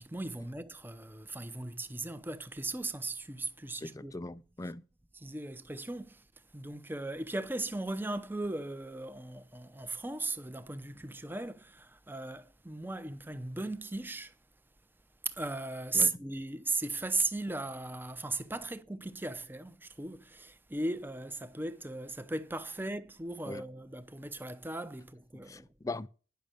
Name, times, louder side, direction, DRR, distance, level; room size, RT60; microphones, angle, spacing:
voice 1, 0.0-4.1 5.1-6.2 6.5-14.3 15.2-25.7, right 2 dB, 10° right, 0.7 m, -37 dB
voice 2, 3.8-4.8 15.9-16.2 23.4-23.6 25.5-26.1, left 2 dB, 15° left, 0.4 m, -40 dB
10.5 x 6.3 x 6.6 m
head